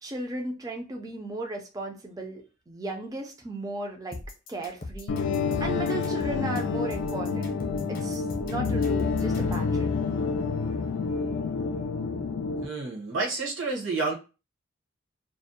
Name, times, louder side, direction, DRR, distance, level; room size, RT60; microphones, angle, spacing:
voice 1, 0.0-4.2 4.5-5.2 5.6-7.6 7.9-9.9, right 2 dB, 15° right, 2 dB, 0.3 m, -35 dB
sound 1, 4.1-9.7, left 2 dB, 45° left, 0.7 m, -40 dB
sound 2, 5.1-12.7, left 4 dB, 80° left, 0.3 m, -28 dB
voice 2, 12.6-14.1, right 3 dB, 70° right, 0 dB, 0.8 m, -29 dB
2.5 x 2.0 x 2.6 m, 0.32 s
head